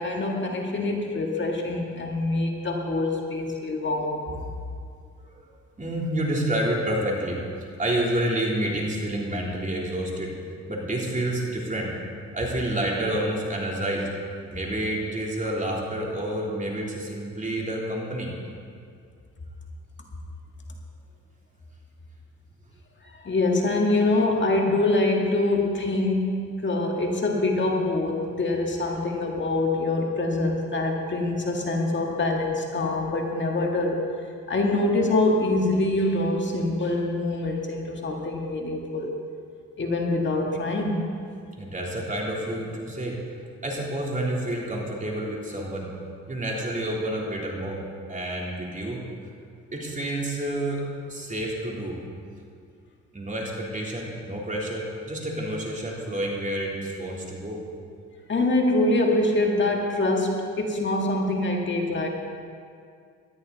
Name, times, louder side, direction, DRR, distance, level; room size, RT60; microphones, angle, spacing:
voice 1, 0.0-4.2 23.0-34.0 34.5-39.1 39.8-41.1 58.3-62.1, left 2 dB, 40° left, 0 dB, 1.9 m, -25 dB
voice 2, 5.8-10.3 10.7-11.9 12.3-14.1 14.5-18.3 41.5-43.2 43.6-45.9 46.3-47.8 48.1-49.0 49.7-52.0 53.1-57.6, right 1 dB, 25° right, -3 dB, 3.4 m, -29 dB
18.5 x 13.0 x 4.1 m, 2.2 s
cardioid pair, 90°, 30 cm